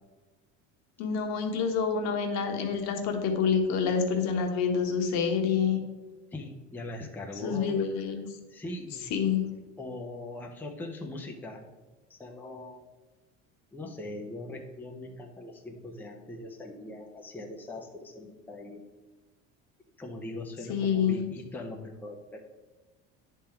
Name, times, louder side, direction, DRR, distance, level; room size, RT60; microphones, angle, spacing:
voice 1, 1.0-5.8 7.4-8.4 9.1-9.4 20.7-21.2, left 6 dB, 60° left, 3 dB, 1.3 m, -27 dB
voice 2, 6.3-7.8 8.5-9.1 9.8-11.6 12.1-12.8 13.7-18.8 20.0-22.4, left 2 dB, 5° left, 0 dB, 0.7 m, -41 dB
10.0 x 3.8 x 4.5 m, 1.2 s
cardioid pair, 135°, 30 cm